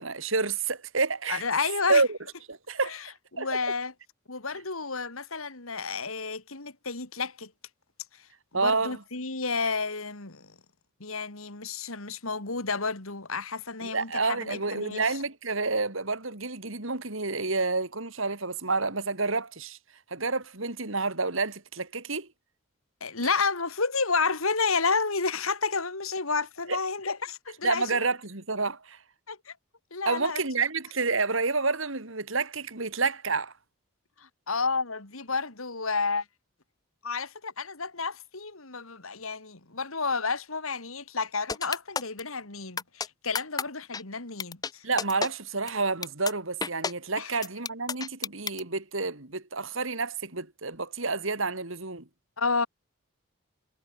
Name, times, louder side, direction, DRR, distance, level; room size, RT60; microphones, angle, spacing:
voice 1, 0.0-1.4 1.9-2.2 2.5-3.0 3.4-3.5 8.5-9.0 13.8-19.8 20.1-22.3 26.7-26.8 27.6-29.0 30.0-33.5 44.8-52.1, right 3 dB, 70° right, 3.0 m, -29 dB
voice 2, 1.3-2.0 2.8-3.0 3.3-3.9 4.3-7.5 8.5-10.5 11.0-15.2 23.0-28.0 29.3-29.5 29.9-30.4 34.2-36.2 37.0-44.8 47.2-47.3 52.4-52.7, left 4 dB, 85° left, 3.1 m, -31 dB
sound 1, 41.5-42.2 42.8-43.1 43.3-43.6 43.9-44.0 44.4-44.7 45.0-45.3 45.7-45.8 46.0-46.3 46.6-46.9 47.4-48.6, left 5 dB, 20° left, 0.5 m, -30 dB
head